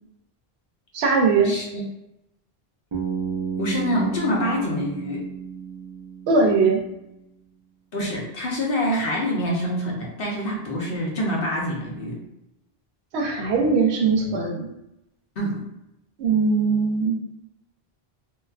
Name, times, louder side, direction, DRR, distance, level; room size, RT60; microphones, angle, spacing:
voice 1, 0.9-1.6 6.3-6.8 13.1-14.7 16.2-17.2, right 4 dB, 85° right, 1 dB, 0.8 m, -20 dB
voice 2, 1.4-1.8 3.6-5.3 7.9-12.2 15.4-15.7, equal, 65° left, -2 dB, 0.9 m, -26 dB
Bass guitar, 2.9-6.9, right 6 dB, 40° right, 0.4 m, -32 dB
2.8 x 2.2 x 2.3 m, 0.86 s
omnidirectional pair, 1.0 m